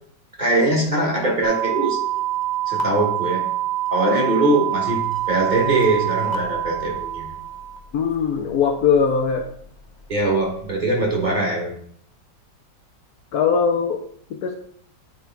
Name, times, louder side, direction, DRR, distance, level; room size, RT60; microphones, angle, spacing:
voice 1, 0.4-2.0 2.7-3.4 3.9-7.3 10.1-11.7, right 2 dB, 30° right, -1 dB, 1.3 m, -21 dB
sound 1, 1.4-7.8, right 12 dB, 50° left, 0.5 m, -25 dB
voice 2, 7.9-9.5 13.3-14.0 14.3-14.5, left 6 dB, 70° left, 4 dB, 1.0 m, -20 dB
9.0 x 3.2 x 4.5 m, 0.62 s
omnidirectional pair, 1.9 m